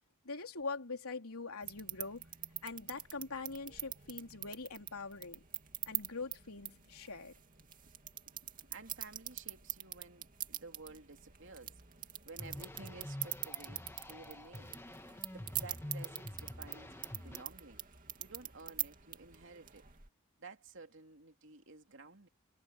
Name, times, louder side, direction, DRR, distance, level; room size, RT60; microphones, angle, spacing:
voice 1, 0.2-2.3 2.6-5.4 5.9-7.3, left 4 dB, 90° left, 3.7 m, -43 dB
sound 1, 1.6-20.1, right 12 dB, 40° right, 2.5 m, -45 dB
voice 2, 8.3-11.8 12.2-14.8 15.3-17.8 18.2-19.9 20.4-22.3, right 3 dB, 60° right, 3.0 m, -53 dB
sound 2, 12.4-17.4, left 1 dB, 10° left, 1.7 m, -47 dB
head